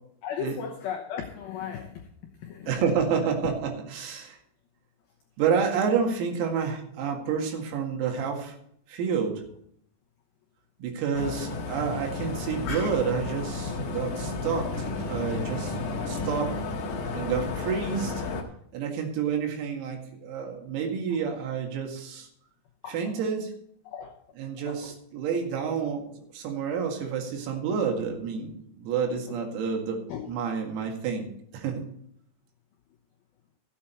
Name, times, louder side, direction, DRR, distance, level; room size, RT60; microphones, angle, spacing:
voice 1, 0.2-2.1 2.4-2.9 3.2-3.5 12.6-13.0 14.7-15.0 15.5-15.7 22.8-23.2 23.8-24.2 24.6-25.0 29.3-29.4 30.1-30.3, left 8 dB, 85° left, 1 dB, 2.1 m, -37 dB
voice 2, 2.7-4.4 5.4-8.6 8.9-9.4 10.8-15.8 16.1-16.5 17.1-18.2 18.7-22.3 22.9-23.5 24.4-26.1 26.3-31.3 31.5-31.9, right 6 dB, 85° right, 2 dB, 4.7 m, -29 dB
sound 1, 11.1-18.4, left 3 dB, 65° left, 1.9 m, -32 dB
14.5 x 8.9 x 4.5 m, 0.69 s
omnidirectional pair, 6.0 m